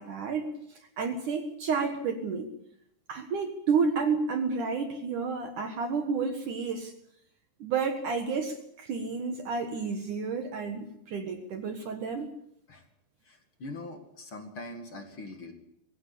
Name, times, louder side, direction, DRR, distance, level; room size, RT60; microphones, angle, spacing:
voice 1, 0.0-2.5 3.1-6.9 7.6-12.3, right 5 dB, 60° right, 6 dB, 2.4 m, -31 dB
voice 2, 13.3-15.5, left 2 dB, 40° left, 5 dB, 2.0 m, -42 dB
22.5 x 16.0 x 8.5 m, 0.75 s
omnidirectional pair, 5.3 m